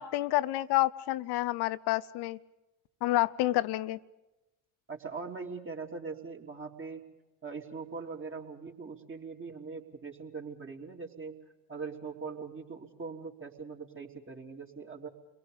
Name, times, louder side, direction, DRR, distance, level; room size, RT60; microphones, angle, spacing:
voice 1, 0.0-2.4 3.0-4.0, left 16 dB, 60° left, 17 dB, 0.8 m, -29 dB
voice 2, 4.9-7.0 7.4-11.4 11.7-15.1, right 4 dB, 25° right, 1 dB, 3.5 m, -41 dB
29.5 x 22.0 x 5.3 m, 0.99 s
hypercardioid pair, 55°, 45 cm